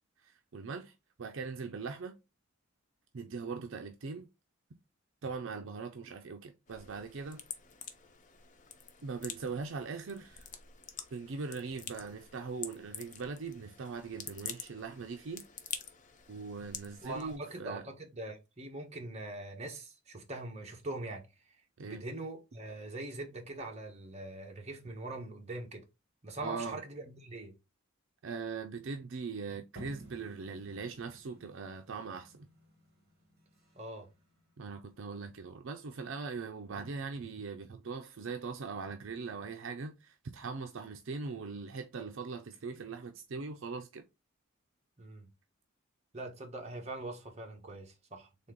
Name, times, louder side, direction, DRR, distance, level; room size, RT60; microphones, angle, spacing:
voice 1, 0.2-2.1 3.1-4.3 5.2-7.4 9.0-10.5 11.1-15.5 16.3-17.9 21.8-22.0 26.4-26.8 28.2-32.5 34.6-44.0, right 4 dB, 65° right, 0.5 m, -41 dB
sound 1, 6.7-17.4, left 7 dB, 35° left, 0.6 m, -47 dB
voice 2, 17.0-21.2 21.8-25.8 26.2-27.5 33.7-34.1 45.0-45.3 46.1-48.3, right 2 dB, 30° right, 1.1 m, -42 dB
sound 2, 29.8-35.2, right 1 dB, 45° right, 1.8 m, -55 dB
4.2 x 3.3 x 3.7 m
head